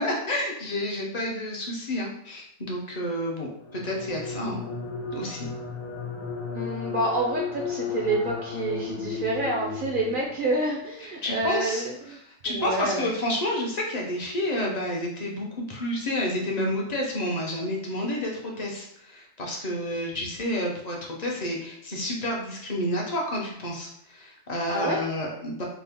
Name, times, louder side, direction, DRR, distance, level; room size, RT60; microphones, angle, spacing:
voice 1, 0.0-4.6 5.1-5.5 11.2-11.9 12.3-25.6, left 1 dB, 40° left, -1 dB, 0.6 m, -30 dB
sound 1, 3.6-10.5, left 5 dB, 85° left, 1.1 m, -34 dB
voice 2, 6.5-12.2 12.5-13.1 24.7-25.0, right 2 dB, 60° right, -2 dB, 0.5 m, -28 dB
3.5 x 2.1 x 3.5 m, 0.72 s
omnidirectional pair, 1.4 m